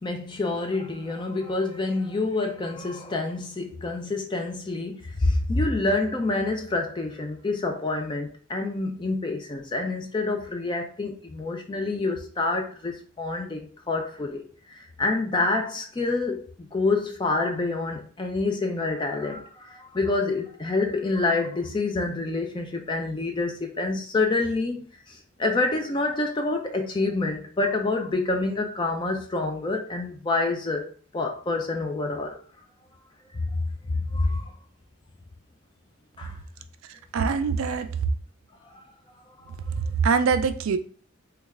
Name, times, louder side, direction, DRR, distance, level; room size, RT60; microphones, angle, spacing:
voice 1, 0.0-14.4 14.7-32.4 33.3-33.5 33.9-34.5 36.2-36.4, left 3 dB, 20° left, 0.4 m, -27 dB
voice 2, 36.9-37.9 39.8-40.8, right 5 dB, 75° right, 0.3 m, -24 dB
3.1 x 2.3 x 3.5 m
head